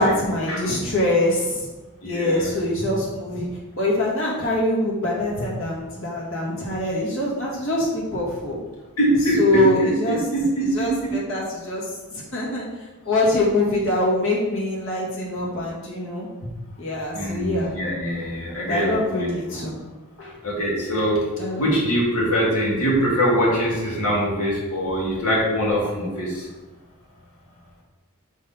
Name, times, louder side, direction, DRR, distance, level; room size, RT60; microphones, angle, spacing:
voice 1, 0.0-1.7 2.0-3.5 3.8-8.6 9.1-10.2 10.6-12.7 13.1-16.3 16.8-17.7 18.6-19.8 20.2-20.3 21.4-21.9, left 1 dB, 60° left, -4 dB, 1.9 m, -24 dB
voice 2, 2.0-2.5 9.0-9.4 9.8-10.4 11.0-11.1 17.1-19.3 20.4-21.2 21.6-26.5, equal, 80° left, -5 dB, 2.2 m, -23 dB
4.8 x 4.1 x 5.8 m, 1.2 s
head